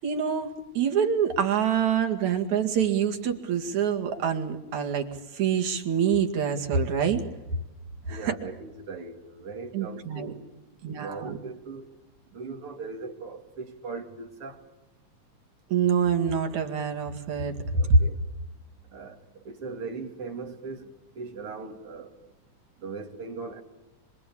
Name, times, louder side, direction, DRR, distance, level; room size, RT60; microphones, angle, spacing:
voice 1, 0.0-7.2 8.1-8.3 9.7-10.3 10.8-11.4 15.7-18.0, right 6 dB, 80° right, 5 dB, 3.7 m, -26 dB
voice 2, 8.1-10.5 11.0-11.9 12.3-14.6 17.8-18.2 18.9-20.9 21.1-22.2 22.8-23.6, right 4 dB, 50° right, 4 dB, 3.5 m, -39 dB
26.0 x 25.5 x 8.6 m, 1.0 s
omnidirectional pair, 3.3 m